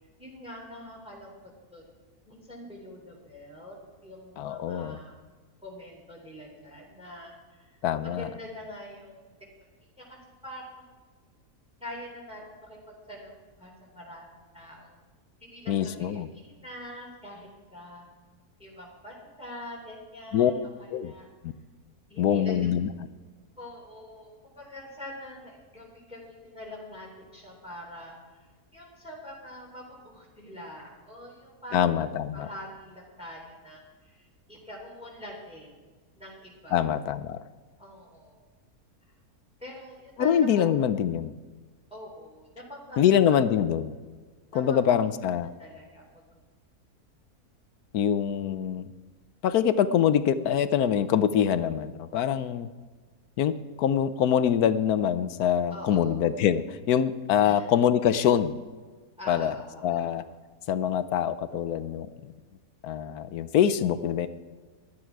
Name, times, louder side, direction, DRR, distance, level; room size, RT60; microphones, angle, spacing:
voice 1, 0.2-1.8 2.3-5.1 5.6-9.2 10.0-10.8 11.8-12.8 13.1-14.3 14.5-15.0 15.4-18.1 18.6-20.5 20.8-21.3 22.1-22.6 23.6-31.9 32.3-35.8 36.2-36.9 37.8-38.5 39.6-40.6 41.9-43.0 44.5-44.8 45.4-46.0 55.7-56.3 57.4-57.7 59.2-60.1, equal, 5° right, -3 dB, 3.5 m, -44 dB
voice 2, 4.4-5.0 7.8-8.3 15.7-16.3 20.3-20.5 20.9-21.1 21.4-21.5 22.2-22.9 31.7-32.5 36.7-37.4 40.2-41.3 43.0-43.9 44.5-45.5 47.9-48.9 49.4-52.7 53.4-58.6 59.3-59.5 59.8-60.2 60.7-62.1 62.8-64.3, left 9 dB, 80° left, 13 dB, 1.2 m, -24 dB
15.0 x 12.0 x 4.7 m, 1.4 s
omnidirectional pair, 1.6 m